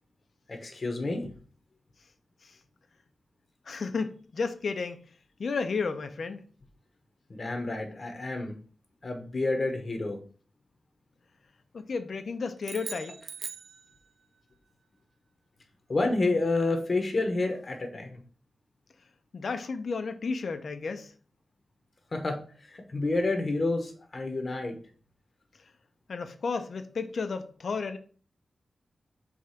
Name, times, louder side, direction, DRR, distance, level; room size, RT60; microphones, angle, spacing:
voice 1, 0.5-1.3 7.3-8.5 9.0-10.2 15.9-18.2 22.1-22.4 22.6-24.8, left 2 dB, 40° left, 1.0 m, -29 dB
voice 2, 3.7-5.0 5.4-6.4 11.7-13.2 19.3-21.1 26.1-28.0, left 4 dB, 60° left, 0.7 m, -32 dB
sound 1, 12.6-14.4, right 5 dB, 60° right, 0.4 m, -41 dB
4.9 x 3.5 x 5.7 m
wide cardioid pair, 160°, 0 cm